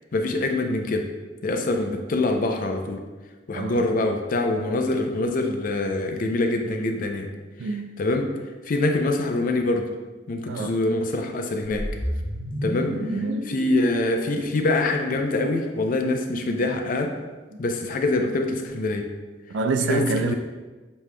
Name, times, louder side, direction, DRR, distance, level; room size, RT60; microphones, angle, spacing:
voice 1, 0.1-1.1 1.4-3.0 3.5-7.3 8.0-8.3 8.7-9.8 10.3-11.9 12.6-17.1 17.6-19.0 19.8-20.3, left 2 dB, 45° left, 0.4 m, -24 dB
voice 2, 7.6-7.9 10.5-10.8 13.1-13.5 19.5-20.3, right 4 dB, 70° right, 0.3 m, -26 dB
sound 1, 11.7-15.9, equal, 90° right, 1.0 m, -32 dB
6.9 x 3.0 x 2.2 m
head